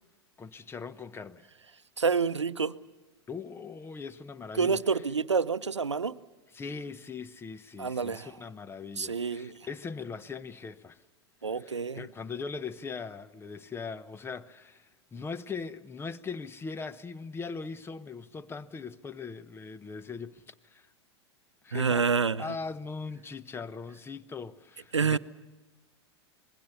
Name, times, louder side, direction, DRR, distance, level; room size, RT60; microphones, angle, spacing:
voice 1, 0.4-1.4 3.3-4.8 6.5-11.0 11.5-20.9 21.6-22.1 22.4-25.2, left 5 dB, 15° left, 0.9 m, -40 dB
voice 2, 2.0-2.7 4.6-6.1 7.8-8.3 9.0-9.5 11.4-12.1 21.7-22.5 24.9-25.2, right 5 dB, 85° right, 0.6 m, -28 dB
26.5 x 20.5 x 6.9 m
figure-of-eight pair, 90°, 15 cm